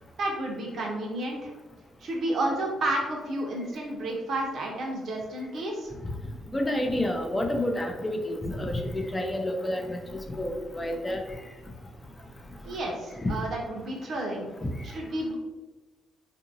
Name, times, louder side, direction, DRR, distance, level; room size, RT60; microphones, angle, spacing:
voice 1, 0.2-1.5 2.0-5.9 12.6-14.5 14.9-15.4, right 1 dB, 60° right, -1 dB, 0.8 m, -31 dB
voice 2, 6.5-11.2 13.2-13.3 14.6-14.7, left 1 dB, 20° left, 3 dB, 0.5 m, -29 dB
2.8 x 2.5 x 2.6 m, 1.2 s
cardioid pair, 90°, 0 cm